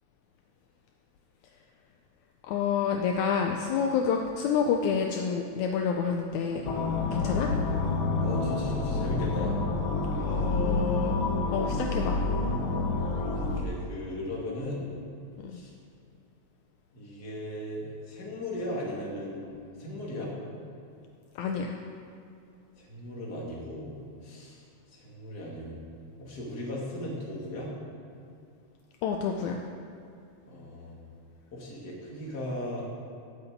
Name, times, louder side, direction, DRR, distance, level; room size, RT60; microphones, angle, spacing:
voice 1, 2.5-6.7 7.1-7.5 10.1-11.2 11.5-12.2 15.4-15.5 21.4-21.8 29.0-29.6, left 6 dB, 75° left, 2 dB, 2.0 m, -28 dB
sound 1, 6.6-13.6, left 3 dB, 60° left, 1.3 m, -28 dB
voice 2, 8.2-9.5 13.3-14.9 15.5-15.7 16.9-19.5 19.8-20.3 22.8-23.9 24.2-25.8 26.2-27.7 30.4-31.0 31.5-32.9, left 1 dB, 35° left, -4 dB, 2.5 m, -37 dB
10.0 x 8.1 x 8.1 m, 2.5 s
omnidirectional pair, 3.5 m